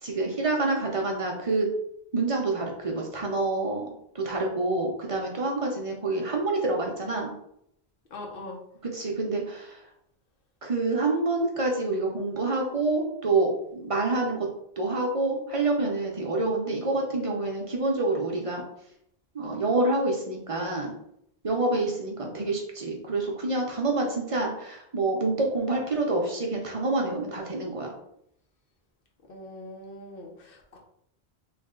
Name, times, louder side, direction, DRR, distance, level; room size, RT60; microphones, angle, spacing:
voice 1, 0.0-1.7 2.1-3.8 4.1-7.3 8.8-9.8 10.6-14.5 14.8-18.6 19.3-20.9 21.4-27.9, right 2 dB, 40° right, 0 dB, 0.6 m, -27 dB
voice 2, 8.1-8.6 29.3-30.8, left 2 dB, 60° left, 0 dB, 0.9 m, -41 dB
3.1 x 2.6 x 3.7 m, 0.74 s
omnidirectional pair, 1.1 m